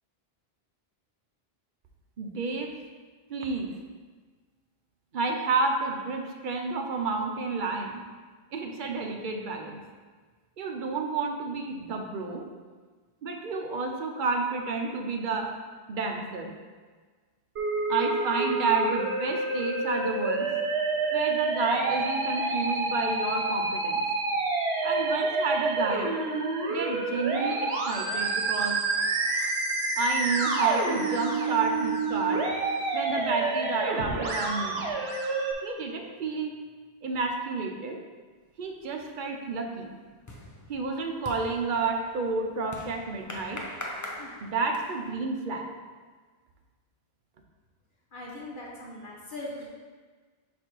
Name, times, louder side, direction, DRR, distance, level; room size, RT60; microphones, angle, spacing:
voice 1, 2.2-2.7 3.3-3.7 5.1-8.0 8.5-9.8 10.6-12.4 13.2-15.5 15.9-16.5 17.9-20.5 21.1-24.0 24.8-26.1 26.7-28.8 30.0-32.4 32.9-34.8 35.6-36.5 37.0-38.0 38.6-39.9 40.7-43.6 44.4-45.7, right 4 dB, 55° right, 2 dB, 0.8 m, -30 dB
Musical instrument, 17.6-35.5, right 3 dB, 75° right, 1.1 m, -28 dB
sound 1, 38.6-39.0 39.3-45.1, left 1 dB, 25° left, 0.5 m, -42 dB
voice 2, 48.1-49.7, left 1 dB, 55° left, -4 dB, 1.0 m, -40 dB
5.0 x 4.2 x 4.5 m, 1.4 s
omnidirectional pair, 1.1 m